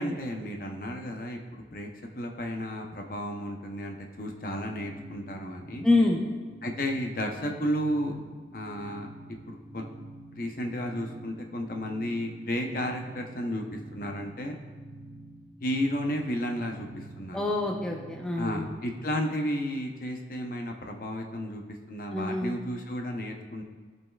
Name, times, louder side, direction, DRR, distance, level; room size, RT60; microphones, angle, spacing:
voice 1, 0.0-1.9 2.2-5.9 6.6-8.2 8.5-9.1 9.5-9.8 10.4-14.6 15.6-17.4 18.4-21.6 21.9-23.6, equal, 50° left, 2 dB, 0.8 m, -33 dB
sound 1, 4.2-18.7, right 1 dB, 90° right, 1.8 m, -47 dB
voice 2, 5.8-6.2 17.3-18.7 22.1-22.6, left 2 dB, 5° left, 0 dB, 0.6 m, -26 dB
15.5 x 5.4 x 2.4 m, 1.5 s
head